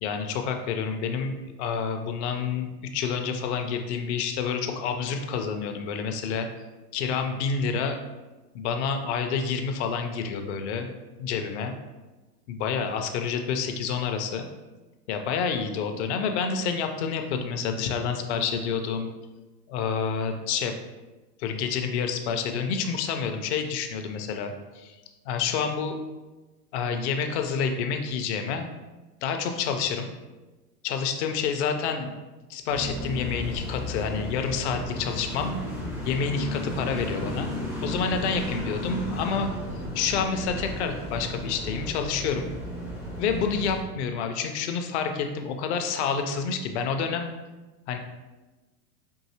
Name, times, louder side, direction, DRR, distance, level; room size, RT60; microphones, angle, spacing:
voice 1, 0.0-6.5 6.9-8.0 8.5-10.9 11.2-11.7 12.5-14.5 15.1-19.1 19.7-20.7 21.4-25.0 25.3-26.0 26.7-28.7 29.2-30.1 30.8-32.1 32.5-35.6 36.0-37.5 37.8-39.5 39.9-42.5 43.2-47.3 47.9-48.0, left 6 dB, 45° left, 6 dB, 0.5 m, -28 dB
sound 1, 32.7-43.8, left 1 dB, 5° right, 0.4 m, -34 dB
4.7 x 2.6 x 2.8 m, 1.2 s
hypercardioid pair, 105°, 48 cm